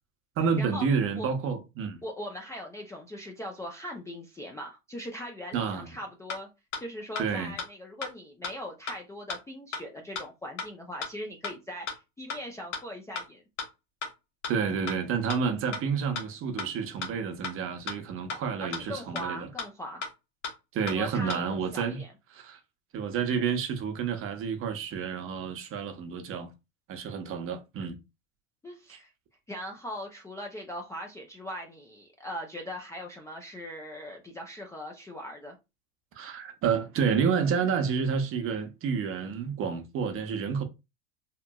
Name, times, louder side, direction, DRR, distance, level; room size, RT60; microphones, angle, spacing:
voice 1, 0.4-2.0 5.5-5.9 7.2-7.5 14.5-19.5 20.7-22.0 22.3-22.6 22.9-26.5 26.9-28.0 36.2-40.6, right 6 dB, 35° right, 0.7 m, -29 dB
voice 2, 2.0-6.5 6.8-13.4 18.6-20.0 20.9-22.1 28.6-29.1 29.5-35.6, equal, 10° left, 0.4 m, -40 dB
sound 1, 6.3-6.4 6.7-6.8 7.2-7.3 7.6-7.7 8.0-8.1 8.4-8.5 8.9-9.0 9.3-9.4 9.7-9.8 10.1-10.2 10.6-10.7 11.0-11.1 11.4-11.5 11.9-12.0 12.3-12.4 12.7-12.8 13.2-13.3 13.6-13.7 14.0-14.1 14.4-14.5 14.9-15.0 15.3-15.4 15.7-15.8 16.1-16.2 16.6-16.7 17.0-17.1 17.4-17.5 17.9-18.0 18.3-18.4 18.7-18.8 19.1-19.2 19.6-19.7 20.0-20.1 20.4-20.5 20.9-21.0 21.3-21.4, left 5 dB, 80° left, 1.1 m, -34 dB
2.9 x 2.4 x 2.2 m
hypercardioid pair, 100°, 37 cm